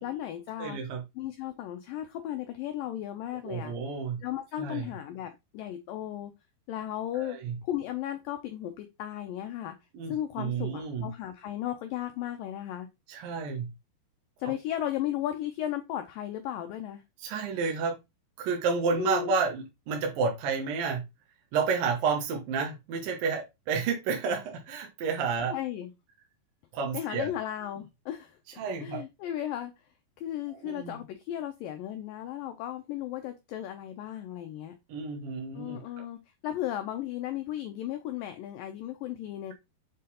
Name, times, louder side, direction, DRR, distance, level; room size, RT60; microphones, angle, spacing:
voice 1, 0.0-0.8 1.2-3.7 4.2-6.3 6.7-7.4 7.6-9.7 10.1-12.9 14.4-17.0 19.0-19.3 25.5-25.9 26.9-28.4 28.8-29.7 30.2-34.7 35.5-36.2 36.4-39.5, left 12 dB, 85° left, 2.0 m, -35 dB
voice 2, 0.6-1.0 3.4-4.2 4.6-4.9 7.2-7.6 9.9-11.1 13.1-13.7 14.4-14.6 17.2-17.9 18.4-21.0 21.5-25.5 26.7-27.3 28.6-29.0 30.6-31.0 34.9-35.8, right 5 dB, 65° right, 2.6 m, -30 dB
7.5 x 3.8 x 4.1 m
omnidirectional pair, 4.8 m